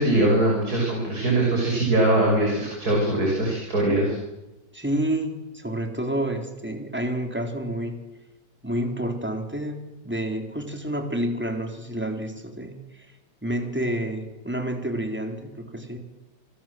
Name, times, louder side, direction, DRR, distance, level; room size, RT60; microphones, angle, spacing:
voice 1, 0.0-4.2, right 1 dB, 60° right, 0 dB, 6.8 m, -22 dB
voice 2, 4.7-8.0 8.6-13.1 13.4-16.0, right 1 dB, 5° right, 4 dB, 4.0 m, -29 dB
29.5 x 26.0 x 7.8 m, 1.0 s
omnidirectional pair, 1.9 m